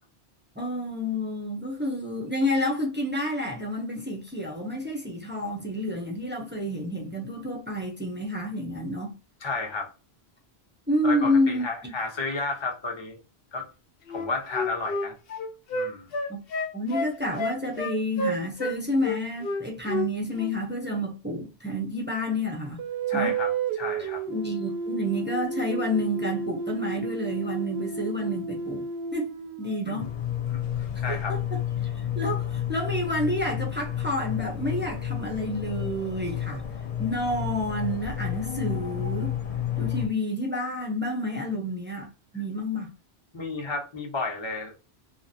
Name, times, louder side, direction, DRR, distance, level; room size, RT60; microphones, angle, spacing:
voice 1, 0.6-9.1 10.9-11.9 16.3-16.4 16.7-22.8 23.1-23.3 24.3-28.9 29.1-29.3 29.6-30.1 31.1-36.6 37.0-39.3 39.8-42.9, left 1 dB, 15° right, 0.5 m, -29 dB
voice 2, 9.4-9.9 11.0-13.2 13.5-13.7 14.1-15.1 15.7-16.1 23.1-23.5 23.8-24.2 29.9-30.1 30.5-31.4 43.3-44.7, left 3 dB, 30° left, 0.8 m, -32 dB
Wind instrument woodwind instrument, 14.1-18.8 19.0-20.1 20.3-20.5, left 2 dB, 70° left, 0.8 m, -30 dB
sound 1, 22.8-30.1, right 5 dB, 80° right, 0.9 m, -32 dB
sound 2, 30.0-40.1, left 10 dB, 50° left, 0.5 m, -31 dB
3.1 x 2.4 x 2.6 m
omnidirectional pair, 1.1 m